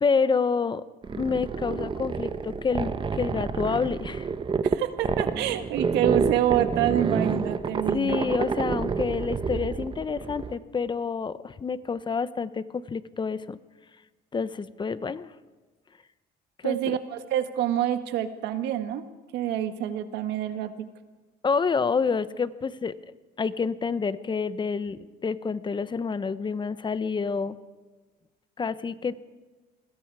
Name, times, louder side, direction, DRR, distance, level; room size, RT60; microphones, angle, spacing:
voice 1, 0.0-0.8 1.1-4.3 7.9-13.6 14.3-15.3 16.6-17.0 21.4-22.9 23.4-27.6 28.6-29.2, left 5 dB, 25° left, 15 dB, 0.9 m, -28 dB
sound 1, 1.0-10.5, right 5 dB, 30° right, 1.1 m, -29 dB
voice 2, 4.6-8.4 16.6-19.0 19.3-20.7, right 11 dB, 85° right, 9 dB, 1.8 m, -27 dB
26.5 x 21.0 x 4.8 m, 1.3 s
cardioid pair, 110°, 17 cm